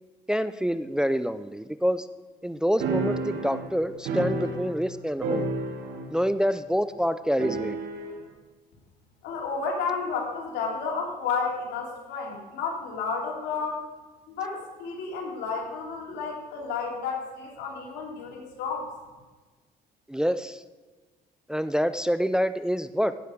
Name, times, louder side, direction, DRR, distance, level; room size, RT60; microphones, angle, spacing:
voice 1, 0.3-2.1 2.4-5.5 6.1-7.8 20.1-20.6 21.5-23.1, equal, 5° right, 12 dB, 0.4 m, -26 dB
sound 1, 2.8-4.9 5.2-6.2 6.5-6.6 7.4-8.2, right 2 dB, 80° right, 2.4 m, -30 dB
voice 2, 9.2-13.8 14.3-18.9, left 5 dB, 90° left, -1 dB, 3.2 m, -31 dB
16.5 x 6.5 x 5.1 m, 1.3 s
cardioid pair, 110°, 17 cm